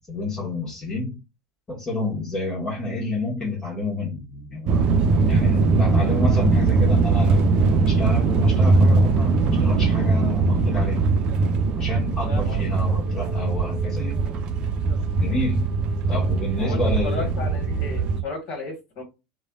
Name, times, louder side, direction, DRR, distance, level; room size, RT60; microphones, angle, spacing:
voice 1, 0.1-1.2 1.7-4.9 5.3-11.0 11.7-14.2 15.2-15.7 16.1-17.4, left 2 dB, 30° left, 1.3 m, -30 dB
sound 1, 4.7-18.2, right 3 dB, 50° right, 0.5 m, -20 dB
voice 2, 12.3-12.6 16.1-16.2 16.6-19.0, left 3 dB, 50° left, 1.3 m, -33 dB
3.1 x 2.2 x 2.4 m
hypercardioid pair, 75°, 2 cm